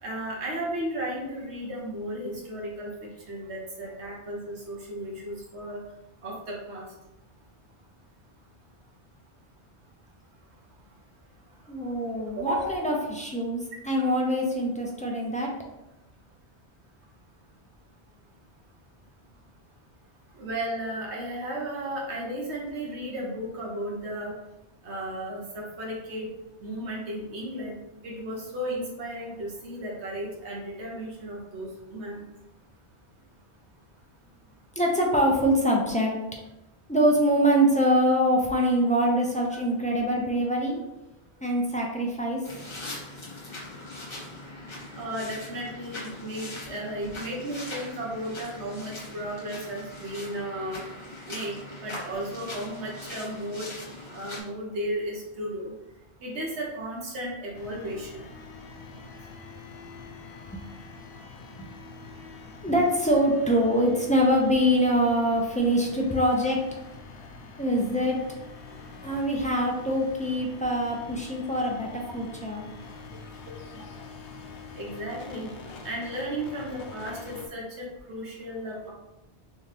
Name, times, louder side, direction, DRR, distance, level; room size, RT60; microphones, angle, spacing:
voice 1, 0.0-5.8 6.2-6.9 12.4-12.8 20.3-24.3 24.8-26.3 26.6-27.8 28.0-32.2 45.0-50.8 51.3-53.7 54.1-55.7 56.2-58.1 72.1-72.2 74.8-75.5 75.8-78.9, right 1 dB, 85° right, -2 dB, 1.3 m, -34 dB
voice 2, 11.7-13.6 13.9-15.5 34.8-36.1 36.9-40.8 41.4-42.4 60.5-60.6 61.6-61.7 62.6-66.6 67.6-68.2 69.0-72.6, equal, 10° left, -2 dB, 0.3 m, -24 dB
sound 1, 42.4-54.4, left 2 dB, 30° left, 1.0 m, -41 dB
sound 2, 57.5-77.5, left 4 dB, 70° left, 0.8 m, -45 dB
3.9 x 2.7 x 3.3 m, 0.93 s
omnidirectional pair, 1.1 m